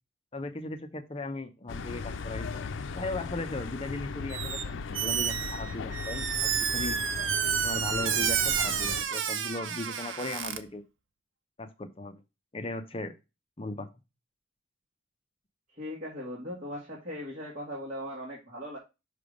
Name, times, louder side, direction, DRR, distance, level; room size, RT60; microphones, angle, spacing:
voice 1, 0.3-2.6 2.9-7.0 7.6-10.8 11.6-12.2 12.5-13.1 13.6-13.9, left 2 dB, 30° left, 8 dB, 0.6 m, -37 dB
sound 1, 1.7-9.0, left 5 dB, 80° left, 0.5 m, -37 dB
Squeak, 4.3-4.6 4.9-10.6, right 8 dB, 90° right, 0.7 m, -30 dB
voice 2, 15.7-18.8, equal, 40° right, -5 dB, 1.7 m, -39 dB
5.9 x 3.4 x 5.1 m, 0.26 s
head